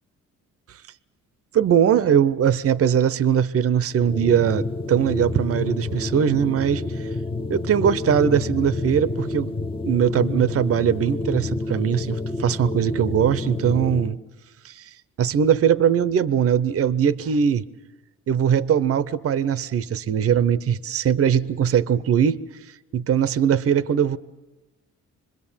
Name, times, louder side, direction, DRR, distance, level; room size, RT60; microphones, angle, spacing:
voice 1, 1.5-7.1 7.5-9.5 9.8-14.2 14.6-14.8 15.2-17.6 18.3-22.4 22.9-24.2, right 8 dB, 50° right, 0.8 m, -21 dB
sound 1, 3.9-14.2, left 2 dB, 15° left, 0.9 m, -29 dB
26.0 x 21.0 x 7.3 m
cardioid pair, 90°, 30 cm